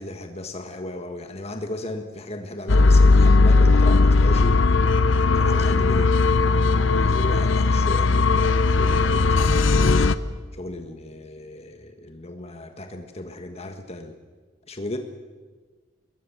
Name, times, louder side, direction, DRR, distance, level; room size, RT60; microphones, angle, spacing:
voice 1, 0.0-4.6 5.3-6.2 7.0-10.1 10.5-14.2 14.7-15.0, left 1 dB, 35° left, 6 dB, 1.4 m, -35 dB
sound 1, 2.7-10.2, left 3 dB, 80° left, 0.9 m, -17 dB
26.5 x 21.5 x 7.3 m, 1.4 s
head